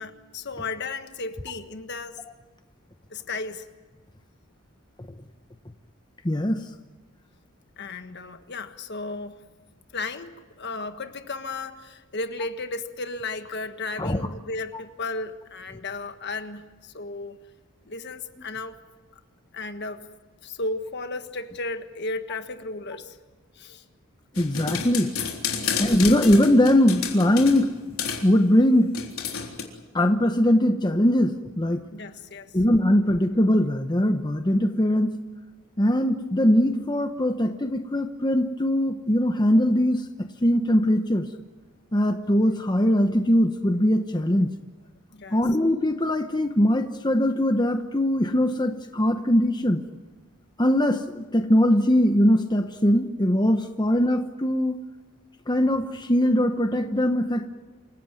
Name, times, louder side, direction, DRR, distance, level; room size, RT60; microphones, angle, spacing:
voice 1, 0.0-2.2 3.1-3.7 7.8-9.4 9.9-10.3 10.6-17.4 17.9-18.8 19.5-20.1 20.4-23.2 23.5-23.8 25.5-25.8 31.9-32.5 45.1-45.4, left 3 dB, 50° left, 1.5 m, -34 dB
voice 2, 6.2-6.6 14.0-14.2 24.4-25.1 25.8-27.7 28.2-28.9 29.9-31.8 32.5-35.1 35.8-41.3 41.9-44.6 45.3-49.8 50.6-54.8 55.5-57.5, left 1 dB, 20° left, 1.0 m, -21 dB
sound 1, 24.3-27.7 28.0-28.3 28.9-29.6, left 6 dB, 90° left, 3.7 m, -30 dB
27.5 x 16.0 x 9.2 m
head